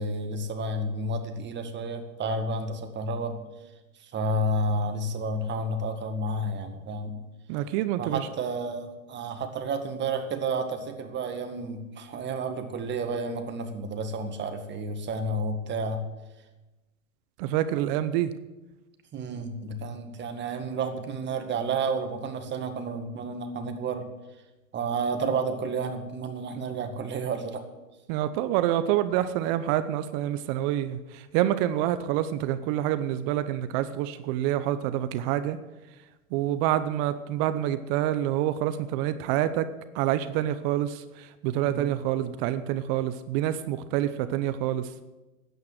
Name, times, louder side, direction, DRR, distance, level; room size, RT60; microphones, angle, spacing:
voice 1, 0.0-3.4 4.0-7.2 8.0-16.0 19.1-24.1 24.7-27.6 41.6-41.9, right 2 dB, 25° right, 6 dB, 1.9 m, -31 dB
voice 2, 7.5-8.3 17.4-18.3 28.1-35.6 36.3-39.7 39.9-44.9, right 12 dB, 40° right, 12 dB, 0.9 m, -27 dB
13.0 x 9.5 x 7.9 m, 1.1 s
hypercardioid pair, 110°, 43 cm